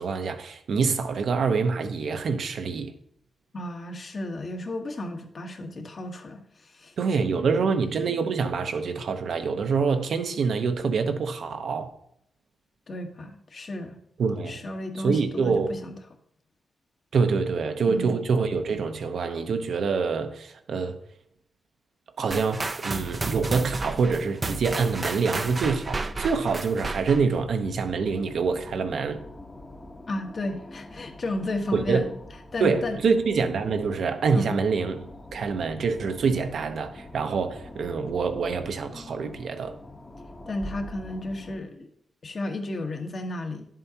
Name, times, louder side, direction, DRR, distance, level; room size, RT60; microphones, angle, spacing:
voice 1, 0.0-2.9 7.0-11.9 14.2-14.6 15.0-15.8 17.1-21.0 22.2-29.2 31.7-32.0 32.6-35.0 35.3-39.8, right 5 dB, 70° right, 0.9 m, -26 dB
voice 2, 3.5-6.4 6.7-6.9 7.2-7.4 12.9-14.0 14.5-15.9 17.9-18.2 30.1-32.0 32.5-33.0 34.3-34.6 40.5-41.9 42.2-43.6, left 1 dB, 50° left, 1.3 m, -33 dB
sound 1, 22.3-27.4, right 3 dB, 30° right, 0.5 m, -32 dB
sound 2, 24.1-41.6, left 1 dB, 30° left, 1.1 m, -45 dB
10.5 x 7.4 x 2.9 m
cardioid pair, 75°, 0 cm